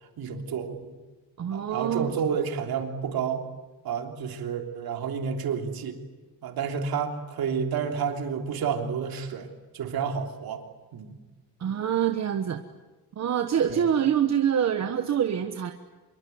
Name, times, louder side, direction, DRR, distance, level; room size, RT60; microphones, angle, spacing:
voice 1, 0.2-1.0 1.5-3.4 3.8-6.0 6.4-10.6 10.9-11.2 13.7-13.8, right 6 dB, 55° right, 4 dB, 3.4 m, -30 dB
voice 2, 1.4-2.1 11.6-12.6 13.2-15.7, right 9 dB, 40° right, 6 dB, 1.3 m, -25 dB
26.0 x 23.0 x 9.5 m, 1.2 s
cardioid pair, 175°, 43 cm